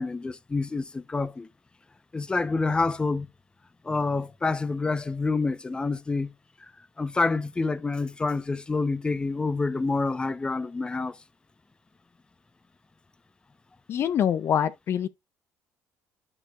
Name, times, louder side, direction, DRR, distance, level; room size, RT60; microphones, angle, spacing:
voice 1, 0.0-1.5 2.1-3.3 3.8-6.3 7.0-11.2, left 3 dB, 15° left, 0.7 m, -27 dB
voice 2, 13.9-15.1, left 9 dB, 50° left, 0.5 m, -25 dB
12.0 x 4.3 x 2.4 m
cardioid pair, 95°, 5 cm